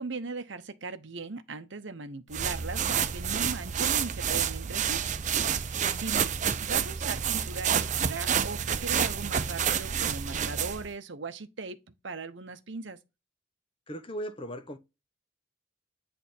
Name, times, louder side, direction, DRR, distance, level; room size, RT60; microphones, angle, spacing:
voice 1, 0.0-5.0 5.9-6.3 6.6-11.8 12.0-13.0, right 3 dB, 65° right, 0.8 m, -38 dB
sound 1, 2.3-10.9, right 8 dB, 40° right, 0.5 m, -29 dB
voice 2, 13.9-14.8, equal, 25° left, 0.8 m, -38 dB
8.3 x 3.4 x 4.2 m
head